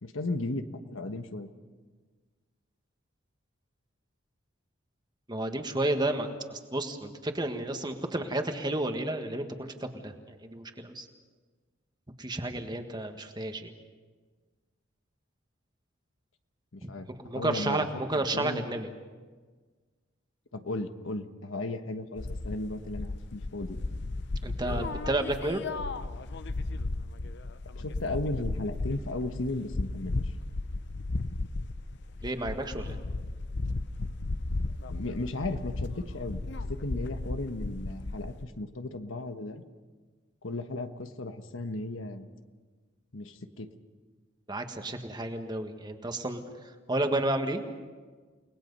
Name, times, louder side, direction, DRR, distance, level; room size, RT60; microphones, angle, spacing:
voice 1, 0.0-1.5 16.7-17.1 17.3-18.0 18.3-18.7 20.5-23.8 27.7-30.3 34.9-36.4 36.7-39.6 40.4-42.3 43.1-43.7, left 2 dB, 80° left, 8 dB, 1.3 m, -35 dB
voice 2, 5.3-11.1 12.2-13.7 16.8-18.9 24.4-25.6 32.2-33.0 44.5-47.6, right 1 dB, 20° right, 6 dB, 1.5 m, -32 dB
sound 1, 22.2-38.4, left 2 dB, 60° left, 0.8 m, -35 dB
30.0 x 19.5 x 5.5 m, 1.4 s
head